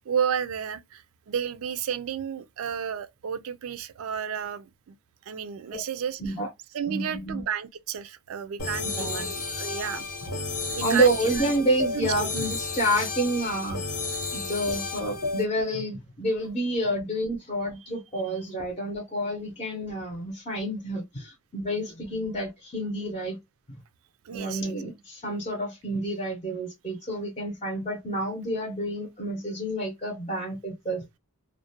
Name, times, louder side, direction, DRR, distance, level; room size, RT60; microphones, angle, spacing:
voice 1, 0.1-5.0 5.3-6.3 6.7-10.1 10.7-11.4 11.9-12.3 24.2-24.7, right 8 dB, 70° right, 0.4 m, -32 dB
voice 2, 6.9-7.4 8.9-9.3 10.8-13.8 14.1-23.4 24.3-31.0, right 1 dB, 25° left, 0.6 m, -29 dB
sound 1, 8.6-15.4, left 3 dB, 90° left, 1.0 m, -32 dB
2.4 x 2.1 x 2.6 m
head